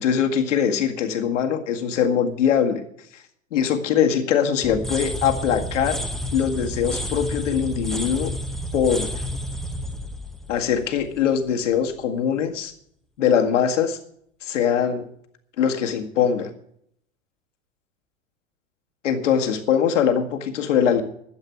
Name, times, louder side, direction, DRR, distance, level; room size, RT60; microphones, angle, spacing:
voice 1, 0.0-2.8 3.5-6.0 6.3-8.3 8.7-9.2 10.5-12.7 13.2-14.0 14.4-15.1 15.6-16.5 19.0-21.0, left 8 dB, 65° left, 5 dB, 2.0 m, -22 dB
sound 1, 4.6-11.5, equal, ahead, 0.8 m, -30 dB
12.0 x 8.2 x 8.1 m, 0.69 s
figure-of-eight pair, 90°, 40 cm